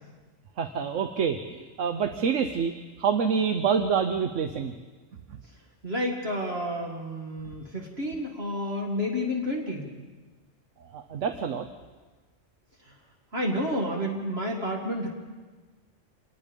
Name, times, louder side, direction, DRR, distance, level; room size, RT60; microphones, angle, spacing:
voice 1, 0.6-4.7 5.3-5.4 10.8-11.7, right 6 dB, 85° right, 8 dB, 1.2 m, -27 dB
voice 2, 5.8-9.9 12.9-13.0 13.3-15.1, equal, 55° right, 0 dB, 2.4 m, -30 dB
27.0 x 19.5 x 5.3 m, 1.3 s
omnidirectional pair, 1.2 m